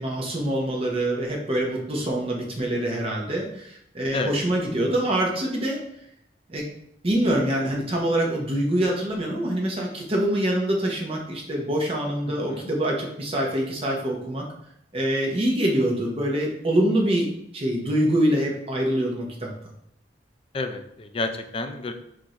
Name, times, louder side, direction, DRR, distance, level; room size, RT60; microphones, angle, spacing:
voice 1, 0.0-5.8 6.5-6.6 7.0-14.4 14.9-17.3 17.5-19.5, right 1 dB, 30° right, -1 dB, 0.8 m, -25 dB
voice 2, 20.5-21.9, left 3 dB, 30° left, 7 dB, 0.4 m, -30 dB
5.9 x 2.5 x 2.9 m, 0.74 s
head